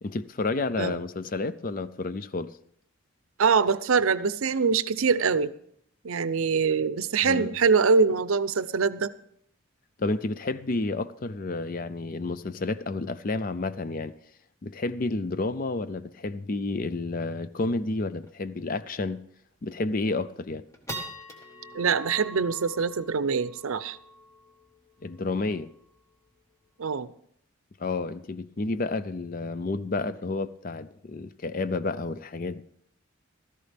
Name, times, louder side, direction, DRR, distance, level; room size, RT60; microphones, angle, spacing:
voice 1, 0.0-2.5 7.2-7.6 10.0-14.1 14.6-19.2 19.6-20.6 25.0-25.7 27.8-32.6, left 3 dB, 40° left, 0.4 m, -30 dB
voice 2, 3.4-5.5 6.0-9.1 21.7-24.0 26.8-27.1, right 5 dB, 80° right, 0.6 m, -24 dB
sound 1, 18.2-18.5 19.0-19.1 19.6-20.0 20.4-27.0, right 1 dB, 15° left, 1.4 m, -44 dB
15.5 x 13.5 x 3.4 m
head